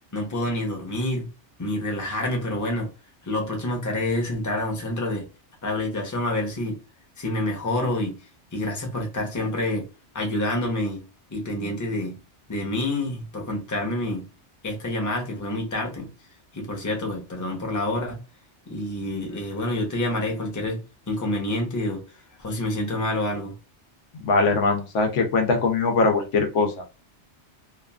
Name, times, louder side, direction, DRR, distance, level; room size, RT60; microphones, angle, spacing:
voice 1, 0.1-1.3 1.6-2.9 3.2-5.2 5.6-6.8 7.2-8.2 8.5-9.8 10.1-11.0 11.3-12.2 12.5-14.2 14.6-16.1 16.5-18.2 18.7-20.8 21.1-22.0 22.4-23.5, left 1 dB, 20° left, 0.7 m, -27 dB
voice 2, 24.3-26.8, left 3 dB, 90° left, 1.1 m, -21 dB
2.9 x 2.4 x 2.2 m
omnidirectional pair, 1.2 m